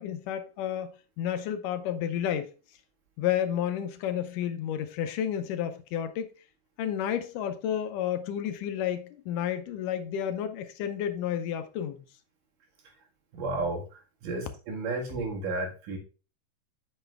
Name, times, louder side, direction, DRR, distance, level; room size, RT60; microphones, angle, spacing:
voice 1, 0.0-2.5 3.2-6.3 6.8-12.1, left 10 dB, 80° left, 2.2 m, -31 dB
voice 2, 13.3-16.0, right 3 dB, 70° right, 3.5 m, -33 dB
8.0 x 6.6 x 3.4 m
omnidirectional pair, 3.9 m